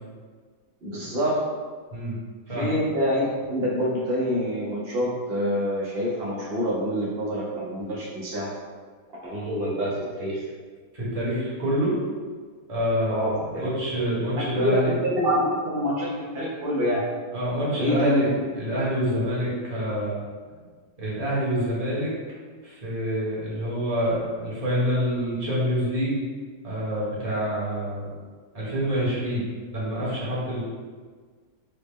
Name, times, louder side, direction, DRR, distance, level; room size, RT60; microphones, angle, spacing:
voice 1, 0.8-1.4 2.5-8.5 9.2-10.4 13.1-13.7 14.3-17.0 17.8-18.2, equal, 85° right, -6 dB, 0.5 m, -26 dB
voice 2, 10.9-12.0 12.7-14.9 17.3-20.2 21.0-22.1 22.6-26.2 26.6-28.1 28.5-29.5 29.7-30.6, equal, 30° right, -8 dB, 0.9 m, -26 dB
4.1 x 2.0 x 3.4 m, 1.5 s
omnidirectional pair, 1.8 m